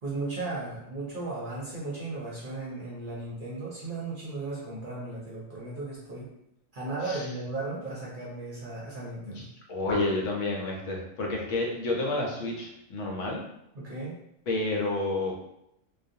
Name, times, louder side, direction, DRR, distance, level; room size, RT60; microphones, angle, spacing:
voice 1, 0.0-6.3 6.7-9.4 13.7-14.2, right 2 dB, 50° right, -6 dB, 0.7 m, -36 dB
voice 2, 9.3-13.4 14.5-15.4, left 2 dB, 70° left, -1 dB, 0.9 m, -30 dB
2.4 x 2.2 x 2.6 m, 0.79 s
omnidirectional pair, 1.4 m